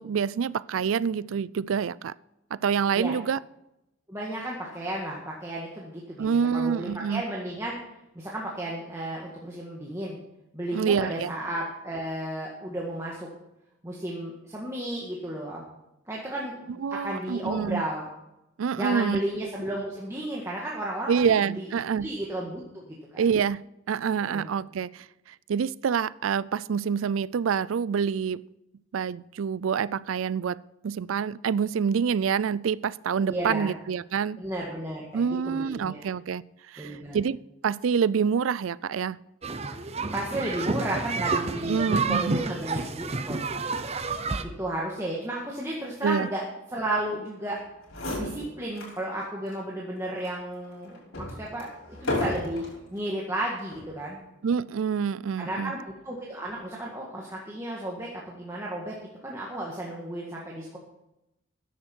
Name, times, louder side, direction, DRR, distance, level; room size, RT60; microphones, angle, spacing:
voice 1, 0.0-2.1 2.5-3.4 6.2-7.2 10.7-11.3 16.8-17.8 18.6-19.2 21.1-22.1 23.2-23.6 23.9-25.1 25.5-28.4 28.9-34.4 35.1-36.4 36.7-39.2 41.6-42.4 46.0-46.3 54.4-55.7, right 6 dB, 80° right, 0.4 m, -27 dB
voice 2, 4.1-7.8 8.2-10.2 10.5-13.3 13.8-15.7 16.1-18.0 18.8-21.7 22.0-23.2 24.2-24.5 33.2-33.7 34.4-36.1 36.8-37.2 40.1-43.4 44.4-47.6 48.2-52.6 52.9-54.2 55.4-58.9 59.2-60.8, right 1 dB, 15° right, 1.8 m, -33 dB
sound 1, 39.4-44.4, right 3 dB, 30° right, 0.7 m, -29 dB
sound 2, 47.6-47.7 47.9-49.0 49.5-49.6 50.2-52.8 53.6-53.9, left 1 dB, 90° left, 5.7 m, -33 dB
14.5 x 10.0 x 4.5 m
head